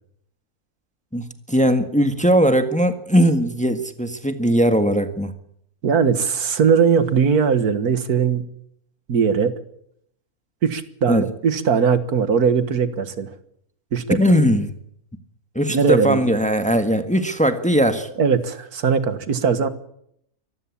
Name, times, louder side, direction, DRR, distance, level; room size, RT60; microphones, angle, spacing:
voice 1, 1.1-5.3 11.1-11.2 14.1-14.7 15.5-18.1, equal, 5° left, 8 dB, 1.5 m, -19 dB
voice 2, 5.8-8.4 9.1-9.5 10.6-13.3 13.9-14.2 15.7-16.2 18.2-19.7, right 6 dB, 80° right, 12 dB, 2.0 m, -19 dB
24.5 x 14.5 x 8.6 m, 0.73 s
omnidirectional pair, 1.6 m